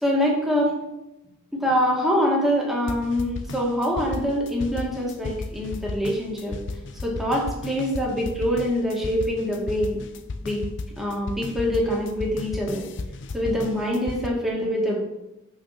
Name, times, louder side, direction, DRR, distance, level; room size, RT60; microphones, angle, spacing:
voice 1, 0.0-0.7 1.5-6.6 7.0-10.0 10.4-10.6 11.0-12.8 13.3-15.0, equal, ahead, -4 dB, 2.1 m, -24 dB
sound 1, 2.9-14.3, left 3 dB, 60° left, 0.6 m, -34 dB
6.2 x 5.8 x 5.9 m, 0.93 s
head